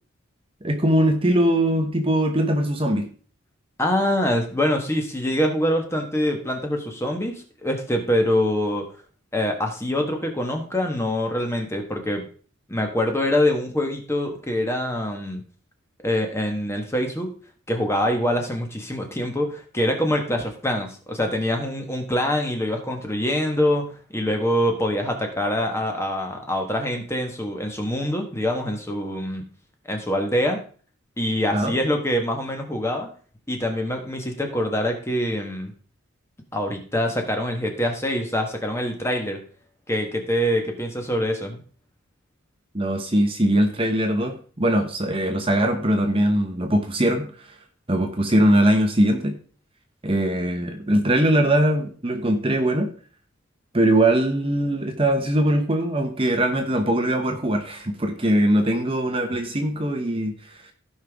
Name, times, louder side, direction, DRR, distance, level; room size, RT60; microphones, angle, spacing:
voice 1, 0.6-3.1 31.5-31.7 42.7-47.5 47.9-49.4 50.0-52.9 53.7-60.7, right 1 dB, 25° right, 4 dB, 1.0 m, -21 dB
voice 2, 3.8-8.9 9.3-12.3 12.7-15.4 16.0-17.3 17.7-29.4 29.8-30.6 31.2-33.1 33.5-35.7 36.5-39.4 39.9-41.6, left 1 dB, 10° left, 3 dB, 1.3 m, -24 dB
16.0 x 5.5 x 3.5 m, 0.42 s
head